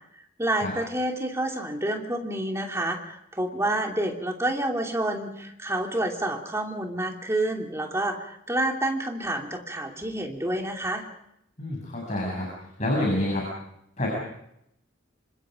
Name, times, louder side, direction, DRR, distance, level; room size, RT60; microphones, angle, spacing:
voice 1, 0.4-11.1, right 1 dB, 15° right, 2 dB, 2.8 m, -28 dB
voice 2, 11.6-12.5 12.8-13.5 14.0-14.1, left 1 dB, 35° left, -1 dB, 7.3 m, -27 dB
27.0 x 25.5 x 5.2 m, 0.77 s
head